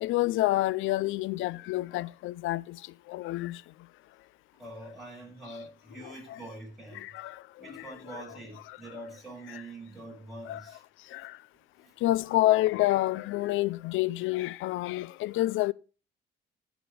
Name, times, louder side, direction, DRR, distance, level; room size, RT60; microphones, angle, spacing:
voice 1, 0.0-2.8 3.1-3.6 6.0-6.4 6.9-7.4 7.7-7.9 8.7-8.8 9.5-9.6 10.5-10.6 11.1-11.4 12.0-15.7, left 16 dB, 85° left, 0.4 m, -28 dB
voice 2, 4.6-7.1 7.6-10.8 11.8-11.9, right 1 dB, ahead, 7.1 m, -44 dB
14.0 x 5.1 x 5.2 m
cardioid pair, 90°, 20 cm